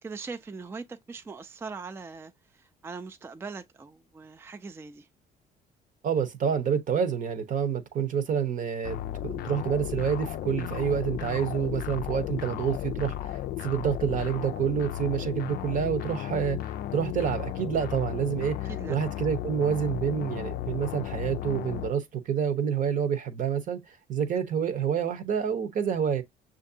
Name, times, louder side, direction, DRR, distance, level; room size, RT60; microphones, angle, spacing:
voice 1, 0.0-5.1 18.7-19.0, right 4 dB, 15° right, 0.4 m, -41 dB
voice 2, 6.0-26.2, right 7 dB, 50° right, 0.9 m, -28 dB
sound 1, 8.8-21.9, left 13 dB, 65° left, 0.4 m, -34 dB
6.3 x 2.5 x 2.7 m
cardioid pair, 110°, 17 cm